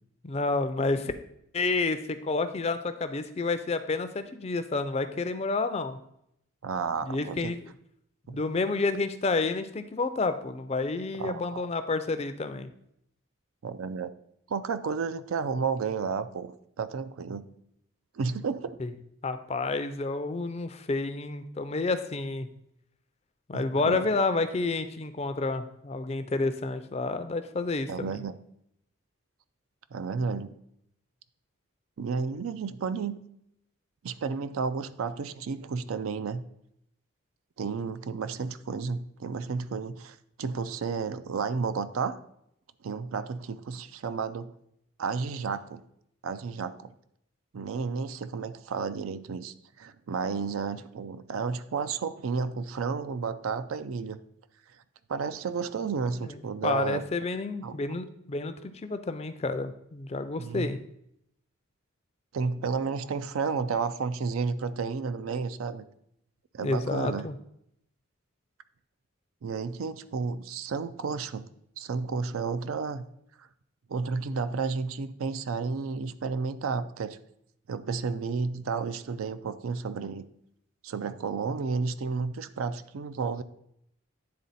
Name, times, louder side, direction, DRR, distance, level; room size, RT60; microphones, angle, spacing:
voice 1, 0.2-1.1 1.5-6.0 7.1-7.7 8.3-12.7 18.8-18.9 19.2-22.5 23.5-28.1 56.6-60.8 66.6-67.3, left 3 dB, 30° left, 10 dB, 0.4 m, -29 dB
voice 2, 6.6-7.6 8.3-8.4 11.2-11.6 13.6-14.1 14.5-17.5 18.1-18.8 23.5-24.2 27.9-28.4 29.9-30.6 32.0-33.2 34.0-36.4 37.6-42.2 42.8-44.5 45.0-45.8 46.2-46.9 47.5-54.2 55.1-57.0 57.6-57.8 60.4-60.7 62.3-65.9 66.5-67.3 69.4-71.5 71.8-73.1 73.4-73.5 73.9-77.2 77.7-80.2 80.8-83.4, right 5 dB, 75° right, 13 dB, 0.4 m, -32 dB
9.6 x 3.8 x 4.1 m, 0.76 s
head